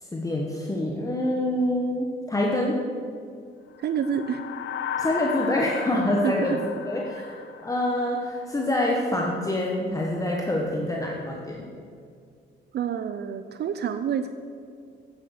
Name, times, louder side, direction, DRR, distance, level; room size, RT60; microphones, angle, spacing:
voice 1, 0.0-2.8 5.0-6.6 6.9-11.7, left 1 dB, 15° left, -1 dB, 1.2 m, -26 dB
sound 1, 3.8-8.4, left 7 dB, 80° left, 0.7 m, -35 dB
voice 2, 3.8-4.4 6.2-6.6 12.7-14.3, right 8 dB, 55° right, 9 dB, 0.5 m, -28 dB
9.1 x 8.0 x 6.6 m, 2.3 s
cardioid pair, 90°, 20 cm